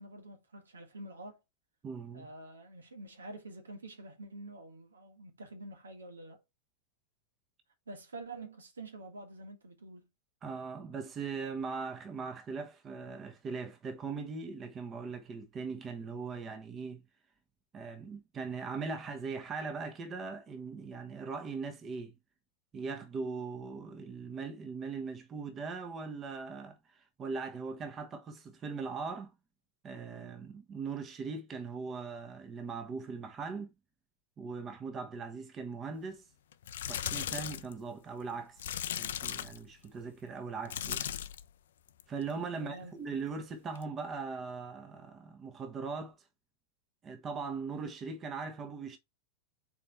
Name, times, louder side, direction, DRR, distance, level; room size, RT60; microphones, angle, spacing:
voice 1, 0.0-1.4 2.1-6.4 7.9-10.1 42.6-42.9, right 2 dB, 70° right, 1.8 m, -47 dB
voice 2, 1.8-2.3 10.4-17.0 17.7-22.1 22.7-29.3 29.8-33.7 34.4-36.2 36.9-38.7 39.0-41.1 42.1-46.3 47.0-49.0, right 4 dB, 25° right, 1.2 m, -40 dB
sound 1, 36.5-37.7 38.6-39.7 40.6-41.5 41.9-42.2 43.8-43.9, left 10 dB, 60° left, 0.5 m, -37 dB
4.9 x 4.4 x 5.6 m
figure-of-eight pair, 90°, 0 cm